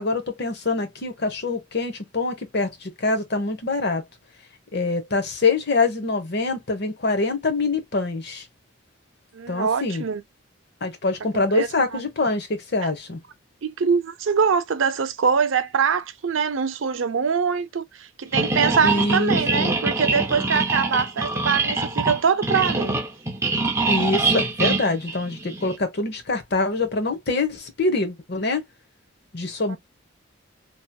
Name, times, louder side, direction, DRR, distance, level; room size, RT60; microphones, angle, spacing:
voice 1, 0.0-4.0 4.7-8.4 9.5-10.0 10.8-13.2 18.8-19.8 23.9-28.6 29.3-29.8, left 3 dB, 55° left, 0.9 m, -25 dB
voice 2, 9.3-10.2 11.3-12.0 12.8-12.9 13.6-23.0 29.7-29.8, right 6 dB, 75° right, 0.5 m, -23 dB
sound 1, 18.3-25.8, right 3 dB, 15° right, 0.6 m, -24 dB
3.0 x 2.7 x 2.2 m
head